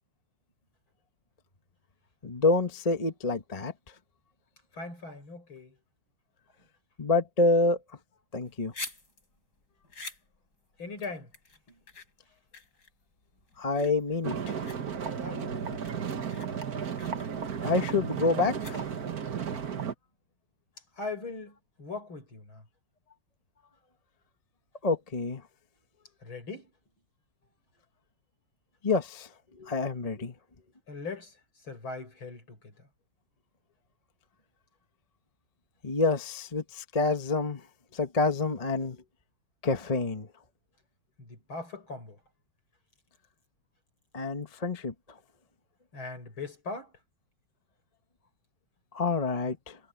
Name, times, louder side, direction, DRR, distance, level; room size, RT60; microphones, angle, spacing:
voice 1, 2.2-3.7 7.0-7.8 8.3-8.7 13.6-14.5 17.6-18.8 24.8-25.4 28.8-29.3 29.6-30.3 35.8-37.6 37.9-39.0 39.6-40.3 44.1-44.9 48.9-49.8, left 3 dB, 20° left, 1.2 m, -27 dB
voice 2, 4.7-5.8 6.6-6.7 10.8-11.3 11.7-11.8 15.2-15.9 20.9-22.7 26.2-26.7 30.9-32.9 41.2-42.2 45.9-46.9, left 3 dB, 65° left, 6.8 m, -40 dB
sound 1, 8.3-19.2, left 2 dB, 45° left, 6.6 m, -47 dB
sound 2, 14.2-19.9, right 7 dB, 45° right, 1.7 m, -34 dB
omnidirectional pair, 2.4 m